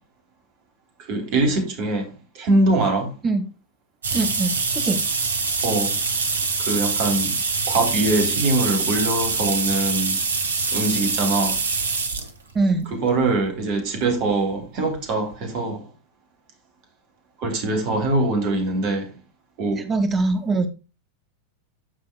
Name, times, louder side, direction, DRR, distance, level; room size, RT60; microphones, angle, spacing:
voice 1, 1.1-3.2 5.6-6.0 6.6-7.4 7.7-10.2 10.7-11.6 12.9-15.8 17.4-19.1 19.6-19.9, right 2 dB, 45° right, 3.3 m, -23 dB
sound 1, 4.0-12.3 13.2-13.3 14.5-14.6 14.9-15.0 15.3-15.4, right 4 dB, 70° right, 1.4 m, -24 dB
voice 2, 4.1-5.0 12.5-12.9 19.9-20.7, right 3 dB, 20° right, 1.7 m, -22 dB
14.0 x 5.7 x 2.3 m
figure-of-eight pair, 90°, 0 cm